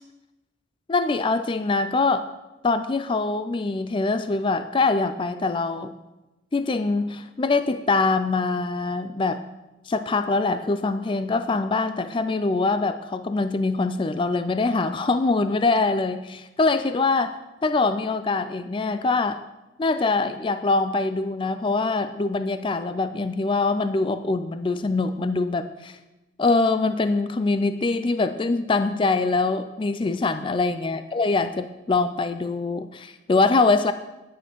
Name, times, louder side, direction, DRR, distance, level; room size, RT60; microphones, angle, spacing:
voice 1, 0.9-2.3 2.6-5.9 6.5-9.4 9.9-17.4 17.6-19.4 19.8-26.0 26.4-33.9, left 3 dB, 30° left, 10 dB, 0.4 m, -23 dB
11.0 x 9.2 x 4.5 m, 1.0 s
head